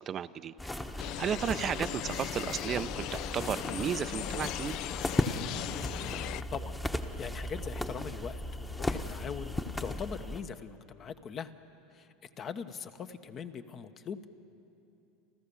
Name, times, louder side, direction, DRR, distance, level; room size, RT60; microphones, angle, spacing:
voice 1, 0.1-0.5 1.0-4.8, right 8 dB, 40° right, 12 dB, 0.5 m, -34 dB
sound 1, 0.6-10.4, left 1 dB, 10° left, 1.1 m, -36 dB
sound 2, 1.0-6.4, left 14 dB, 55° left, 0.4 m, -38 dB
voice 2, 7.2-9.5 9.8-11.5 11.9-12.1 12.4-14.3, left 6 dB, 40° left, 9 dB, 1.0 m, -41 dB
30.0 x 13.5 x 7.0 m, 2.8 s
hypercardioid pair, 90°, 0 cm